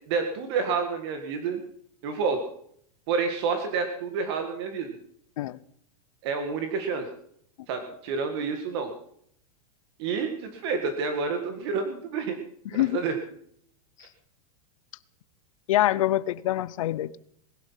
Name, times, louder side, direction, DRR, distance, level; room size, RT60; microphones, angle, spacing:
voice 1, 0.1-1.6 2.0-2.4 3.1-4.9 6.2-7.1 7.7-8.9 10.0-12.4 12.7-13.1 14.0-14.1, right 5 dB, 40° right, 1.9 m, -29 dB
voice 2, 15.7-17.2, left 14 dB, 55° left, 0.7 m, -25 dB
20.5 x 12.0 x 5.7 m
supercardioid pair, 175°, 20 cm